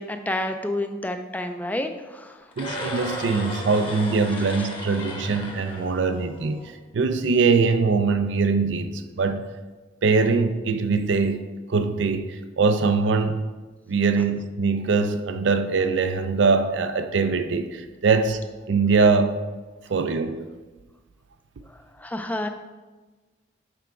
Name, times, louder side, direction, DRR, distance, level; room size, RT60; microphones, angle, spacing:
voice 1, 0.0-2.4 22.0-22.5, left 1 dB, 10° left, 7 dB, 0.4 m, -29 dB
sound 1, 2.5-6.7, left 1 dB, 25° left, 1.0 m, -35 dB
voice 2, 2.6-9.4 10.0-13.4 13.9-18.4 18.7-19.4 19.9-20.4, right 4 dB, 75° right, 9 dB, 0.4 m, -22 dB
6.1 x 4.6 x 4.5 m, 1.3 s
head